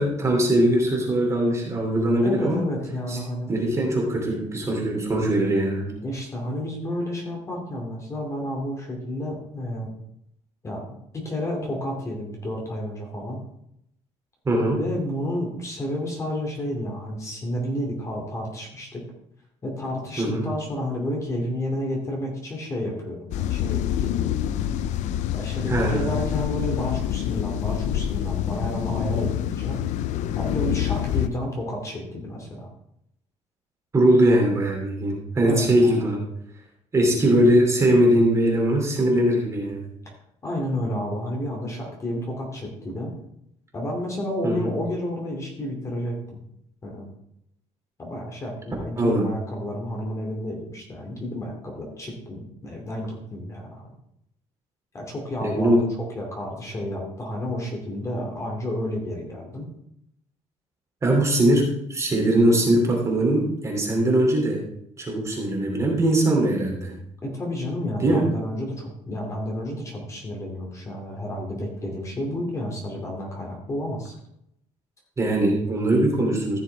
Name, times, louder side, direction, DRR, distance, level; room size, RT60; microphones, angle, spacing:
voice 1, 0.0-2.6 3.1-3.2 3.5-5.9 14.4-14.8 20.2-20.4 25.7-26.0 33.9-36.2 36.9-39.9 44.4-44.7 49.0-49.3 55.4-55.8 61.0-61.6 61.9-64.6 65.0-66.9 68.0-68.2 75.2-76.6, right 1 dB, 25° right, -1 dB, 2.8 m, -21 dB
voice 2, 2.2-3.5 6.0-9.9 10.6-10.8 11.1-13.4 14.8-19.0 19.6-24.4 25.3-29.8 30.4-32.7 35.5-36.0 40.4-43.1 43.7-46.4 46.8-47.1 48.0-53.8 54.9-55.8 56.1-59.7 67.2-74.1, left 1 dB, 25° left, 0 dB, 2.6 m, -31 dB
sound 1, 23.3-31.3, left 11 dB, 80° left, 0.5 m, -26 dB
14.5 x 6.8 x 3.5 m, 0.76 s
cardioid pair, 145°, 12 cm